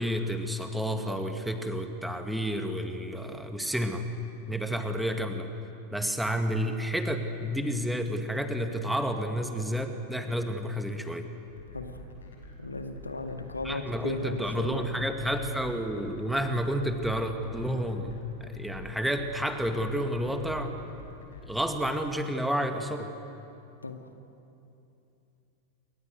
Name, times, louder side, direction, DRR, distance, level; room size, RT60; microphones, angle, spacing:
voice 1, 0.0-4.0 4.5-5.5 5.9-11.2 13.6-20.8 21.5-23.1, equal, 5° right, 6 dB, 2.1 m, -30 dB
sound 1, 11.5-21.9, left 2 dB, 65° left, 5.9 m, -46 dB
voice 2, 12.6-14.9 23.8-24.1, left 2 dB, 80° left, 6 dB, 2.0 m, -36 dB
28.5 x 24.0 x 8.0 m, 2.8 s
figure-of-eight pair, 90°, 0 cm